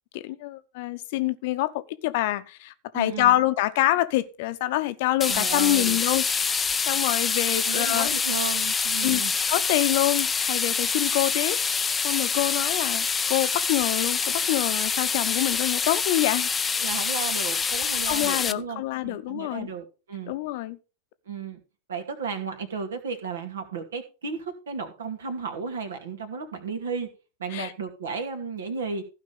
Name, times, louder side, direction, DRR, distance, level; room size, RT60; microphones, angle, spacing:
voice 1, 0.1-6.5 6.9-8.1 9.0-9.2 9.5-11.6 12.0-16.5 18.1-19.7 20.3-20.8 27.5-27.7, left 16 dB, 50° left, 0.9 m, -26 dB
voice 2, 2.9-3.3 5.2-6.0 7.6-9.3 16.8-20.3 21.3-21.6 21.9-27.1 27.4-29.0, right 5 dB, 65° right, 2.4 m, -34 dB
sound 1, 5.2-18.5, left 5 dB, 15° left, 0.6 m, -26 dB
15.0 x 5.2 x 5.4 m
figure-of-eight pair, 90°, 0 cm